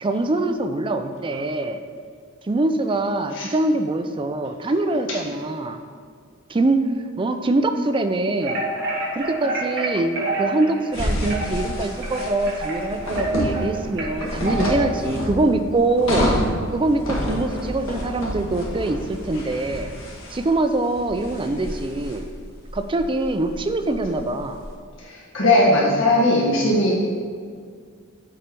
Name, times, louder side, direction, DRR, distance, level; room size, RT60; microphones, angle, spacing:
voice 1, 0.0-1.8 2.5-5.8 6.5-6.9 7.2-8.6 9.1-16.3 16.7-19.9 20.3-22.2 22.7-24.6, right 2 dB, 25° right, 7 dB, 0.4 m, -23 dB
sound 1, 8.4-15.0, right 2 dB, 60° right, 1.8 m, -28 dB
sound 2, 10.9-24.7, equal, 85° left, 1.8 m, -29 dB
voice 2, 25.0-26.9, left 1 dB, 65° left, -6 dB, 1.7 m, -18 dB
7.5 x 4.4 x 5.3 m, 2.1 s
head